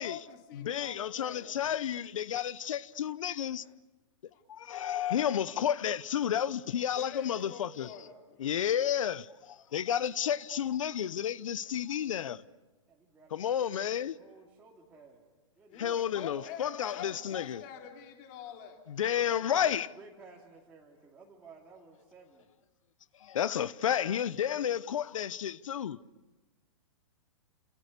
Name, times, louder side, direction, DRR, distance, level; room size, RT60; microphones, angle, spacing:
voice 1, 0.0-1.7 4.3-4.4 6.9-8.4 15.7-18.8, left 8 dB, 35° left, 3.2 m, -46 dB
voice 2, 0.6-3.6 4.5-7.9 8.4-12.4 13.3-14.1 15.8-17.6 18.9-19.9 23.2-26.0, left 9 dB, 80° left, 0.9 m, -31 dB
voice 3, 12.9-16.2 19.2-22.5 25.0-25.3, right 4 dB, 10° right, 2.8 m, -55 dB
29.5 x 28.0 x 6.8 m
hypercardioid pair, 160°, 16 cm